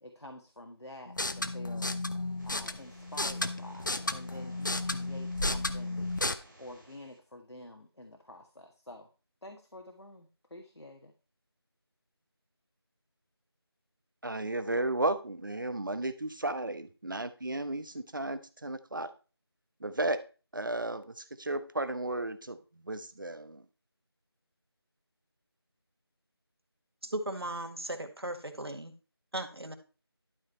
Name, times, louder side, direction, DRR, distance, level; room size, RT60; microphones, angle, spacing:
voice 1, 0.0-1.9 2.4-6.0 6.6-9.1 9.4-11.1, left 1 dB, 80° left, 4 dB, 1.6 m, -49 dB
sound 1, 1.1-6.3, left 2 dB, 50° left, 0.8 m, -33 dB
sound 2, 2.2-7.2, right 1 dB, 5° right, 1.7 m, -58 dB
voice 2, 14.2-19.1 19.8-20.2 20.5-23.6, right 2 dB, 50° right, 11 dB, 1.0 m, -34 dB
voice 3, 27.0-28.9 29.3-29.7, right 1 dB, 70° right, 7 dB, 1.8 m, -37 dB
12.0 x 5.2 x 4.4 m, 0.33 s
figure-of-eight pair, 175°, 14 cm